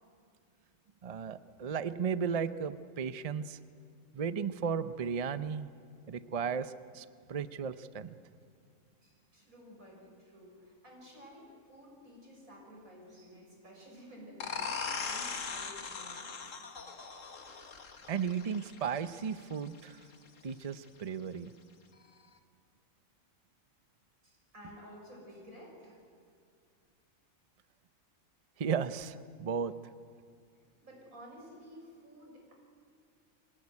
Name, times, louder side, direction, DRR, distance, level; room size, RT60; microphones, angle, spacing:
voice 1, 1.0-3.6 4.1-5.7 6.1-8.2 18.1-20.0 20.4-21.5 28.6-29.7, right 6 dB, 40° right, 13 dB, 0.5 m, -35 dB
voice 2, 9.0-16.4 24.2-26.4 30.8-32.5, equal, 85° right, -1 dB, 6.8 m, -53 dB
sound 1, 14.4-19.8, left 5 dB, 65° left, 1.8 m, -40 dB
25.0 x 17.5 x 9.7 m, 2.2 s
omnidirectional pair, 1.4 m